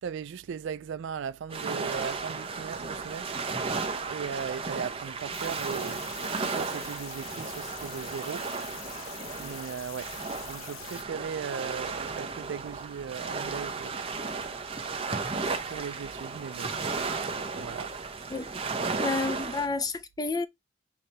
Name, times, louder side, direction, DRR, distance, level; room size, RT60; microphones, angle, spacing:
voice 1, 0.0-3.3 4.1-6.0 6.5-8.5 9.4-10.1 10.4-14.0 15.7-16.7 17.5-17.9, right 7 dB, 60° right, 0.3 m, -37 dB
sound 1, 1.5-19.7, right 4 dB, 25° right, 0.7 m, -34 dB
sound 2, 5.3-11.0, left 7 dB, 70° left, 0.7 m, -44 dB
voice 2, 19.0-20.5, left 3 dB, 20° left, 0.4 m, -30 dB
5.5 x 2.8 x 3.2 m
head